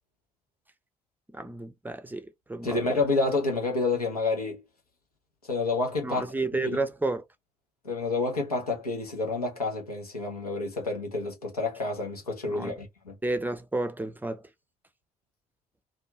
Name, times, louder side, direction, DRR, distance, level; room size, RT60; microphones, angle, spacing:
voice 1, 1.3-3.0 6.0-7.2 12.5-12.7 13.2-14.5, right 2 dB, 10° right, 0.5 m, -31 dB
voice 2, 2.6-4.6 5.5-6.3 6.6-6.8 7.8-13.1, left 3 dB, 90° left, 0.7 m, -29 dB
2.6 x 2.3 x 2.8 m
figure-of-eight pair, 45°, 19 cm